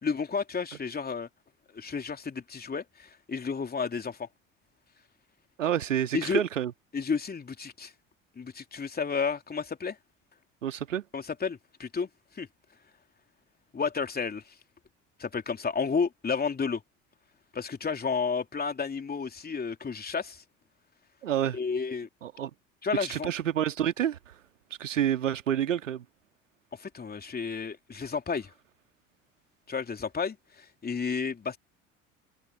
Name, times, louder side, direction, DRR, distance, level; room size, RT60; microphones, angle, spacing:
voice 1, 0.0-1.3 1.7-4.3 6.1-6.4 6.9-7.9 8.3-10.0 11.1-12.1 12.3-12.5 13.7-14.5 15.2-16.8 17.5-20.4 21.5-22.1 22.8-23.3 26.8-28.5 29.7-31.6, left 5 dB, 25° left, 3.2 m, -31 dB
voice 2, 5.6-6.7 10.6-11.0 21.2-21.6 22.2-22.5 23.0-24.2 24.8-26.0, right 10 dB, 80° right, 2.0 m, -28 dB
figure-of-eight pair, 60°, 38 cm